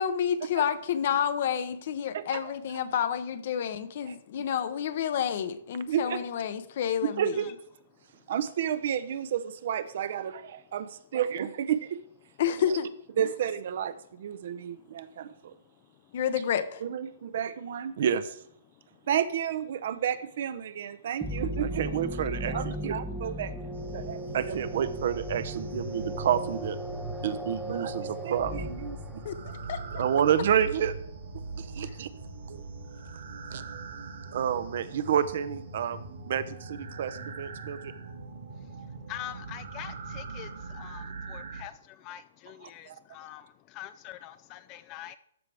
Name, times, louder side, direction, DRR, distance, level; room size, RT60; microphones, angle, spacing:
voice 1, 0.0-7.3 12.4-12.9 13.2-13.3 16.1-16.8 29.2-29.4 29.7-29.8, left 8 dB, 55° left, 12 dB, 0.7 m, -29 dB
voice 2, 2.1-2.5 4.1-4.2 5.9-6.2 7.0-7.5 8.3-12.0 13.2-15.5 16.8-18.4 19.1-23.5 23.9-26.8 27.2-29.2 29.9-30.9 31.6-32.1 32.5-32.6 33.5-33.6 34.3-36.0 36.3-37.9 42.9-43.0, right 9 dB, 55° right, 13 dB, 0.6 m, -30 dB
sound 1, 21.2-29.8, equal, ahead, 0.7 m, -37 dB
sound 2, 23.7-41.6, right 3 dB, 80° right, 2.1 m, -41 dB
voice 3, 39.1-40.5 40.7-41.7 42.0-43.4 43.7-45.2, left 13 dB, 30° left, 13 dB, 0.3 m, -43 dB
13.0 x 4.9 x 3.4 m, 0.68 s
hypercardioid pair, 150°, 0 cm